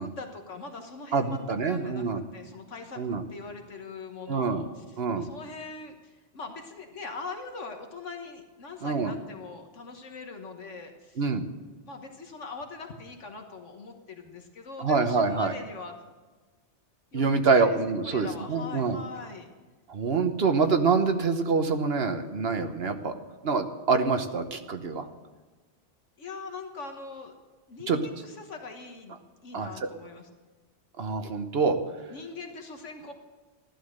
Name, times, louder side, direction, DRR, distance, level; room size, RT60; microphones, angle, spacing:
voice 1, 0.0-11.3 11.9-16.0 17.1-17.8 18.0-19.5 26.2-27.3 27.7-30.3 32.1-33.1, left 4 dB, 70° left, 4 dB, 1.6 m, -42 dB
voice 2, 1.1-2.2 3.0-3.2 4.3-4.6 5.0-5.3 8.8-9.1 11.2-11.4 14.8-15.5 17.1-19.0 19.9-23.1 23.4-25.0 27.9-28.0 29.5-29.9 31.0-31.8, right 4 dB, 55° right, 7 dB, 1.3 m, -26 dB
15.0 x 12.0 x 6.6 m, 1.3 s
omnidirectional pair, 1.3 m